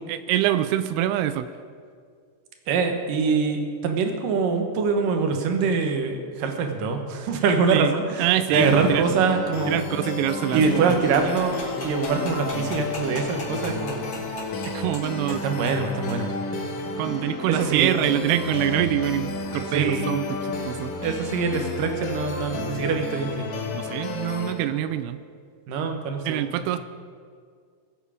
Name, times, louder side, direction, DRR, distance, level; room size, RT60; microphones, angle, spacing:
voice 1, 0.0-1.5 7.7-7.9 8.2-9.0 9.7-11.0 14.6-15.4 17.0-20.2 20.6-20.9 23.7-25.2 26.3-26.8, right 12 dB, 90° right, 12 dB, 2.6 m, -25 dB
voice 2, 2.7-9.7 10.5-14.2 15.3-16.4 17.5-18.0 19.7-20.1 21.0-23.5 25.7-26.5, right 5 dB, 65° right, 5 dB, 2.7 m, -24 dB
sound 1, 8.5-24.5, left 2 dB, 80° left, 1.3 m, -32 dB
sound 2, 10.6-15.0 15.3-15.4 15.7-15.8 16.1-16.2, left 2 dB, 30° left, 4.7 m, -37 dB
21.5 x 8.3 x 5.0 m, 2.1 s
omnidirectional pair, 4.5 m